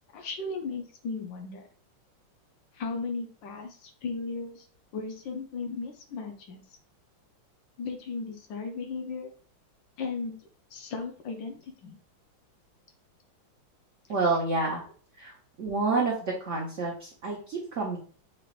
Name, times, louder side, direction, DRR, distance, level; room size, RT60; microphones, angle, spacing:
voice 1, 0.1-1.6 2.7-4.7 4.9-6.6 7.8-9.3 10.0-10.4 10.7-11.9, left 4 dB, 65° left, 5 dB, 1.4 m, -36 dB
voice 2, 14.1-14.8 15.2-15.3 15.6-18.0, right 3 dB, 55° right, -3 dB, 0.9 m, -28 dB
5.9 x 2.5 x 3.2 m, 0.42 s
omnidirectional pair, 2.3 m